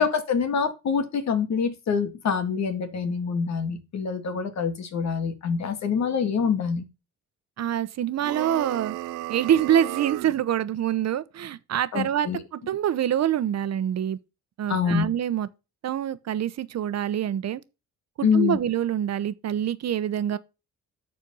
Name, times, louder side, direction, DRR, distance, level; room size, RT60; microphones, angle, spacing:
voice 1, 0.0-6.8 11.9-12.4 14.7-15.1 18.2-18.6, left 6 dB, 60° left, 2.1 m, -25 dB
voice 2, 7.6-8.9 9.3-14.2 14.6-15.5 15.8-17.6 18.2-20.4, right 10 dB, 60° right, 0.9 m, -25 dB
sound 1, 8.2-10.4, right 17 dB, 90° right, 0.6 m, -34 dB
12.5 x 4.5 x 5.5 m
cardioid pair, 90°, 30 cm